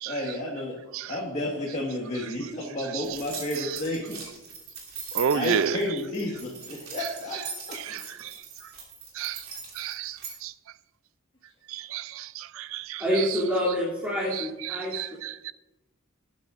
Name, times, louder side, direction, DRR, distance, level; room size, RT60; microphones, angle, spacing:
voice 1, 0.0-0.8 1.1-4.2 5.3-7.4 7.7-8.0, left 1 dB, 35° left, 1.7 m, -31 dB
sound 1, 3.0-10.3, right 6 dB, 90° right, 3.2 m, -40 dB
voice 2, 5.1-5.8 7.8-8.3 9.2-9.4 9.8-10.5 11.7-13.0 14.3-14.4 14.7-15.5, right 8 dB, 70° right, 0.4 m, -31 dB
voice 3, 13.0-15.0, equal, 10° right, 2.9 m, -27 dB
19.0 x 10.0 x 2.5 m
head